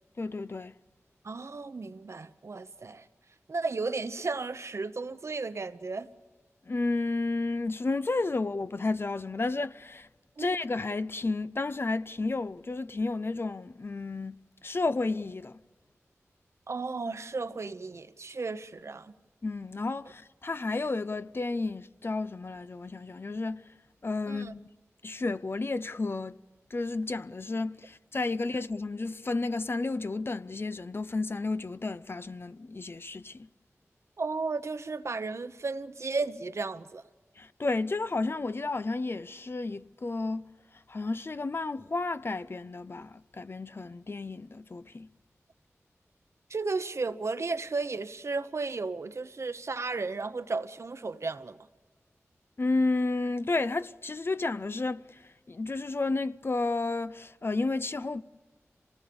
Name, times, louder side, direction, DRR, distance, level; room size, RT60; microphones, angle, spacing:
voice 1, 0.2-0.7 6.7-10.1 10.4-15.6 19.4-23.7 24.0-24.6 25.0-26.4 26.7-33.5 37.4-45.1 52.6-58.2, left 3 dB, 45° left, 0.6 m, -32 dB
voice 2, 1.2-3.1 3.5-6.1 10.4-10.5 16.7-19.1 24.3-24.5 34.2-37.0 46.5-51.6, right 3 dB, 60° right, 0.9 m, -34 dB
27.0 x 18.5 x 7.0 m
wide cardioid pair, 65°, 5 cm